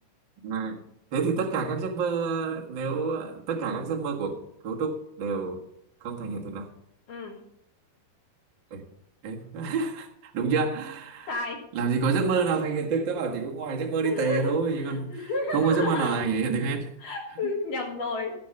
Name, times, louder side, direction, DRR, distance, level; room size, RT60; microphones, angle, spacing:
voice 1, 0.4-0.8 1.1-5.6 6.0-6.7 8.7-8.8 9.2-11.3 11.7-16.9, right 5 dB, 60° right, 1.2 m, -28 dB
voice 2, 11.3-11.6 14.0-16.2 17.0-18.3, left 3 dB, 60° left, 3.0 m, -31 dB
15.5 x 6.0 x 6.6 m
omnidirectional pair, 4.7 m